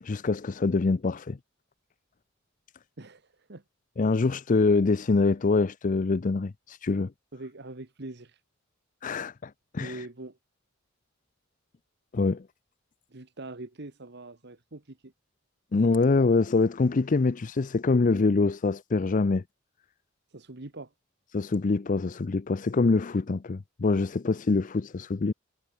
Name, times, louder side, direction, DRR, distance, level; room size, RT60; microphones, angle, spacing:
voice 1, 0.0-1.4 4.0-7.1 9.0-10.0 12.1-12.5 15.7-19.4 21.3-25.3, left 3 dB, 40° left, 0.5 m, -25 dB
voice 2, 3.0-3.6 7.3-8.4 9.8-10.4 13.1-15.1 20.3-20.9, right 2 dB, 55° right, 1.5 m, -43 dB
head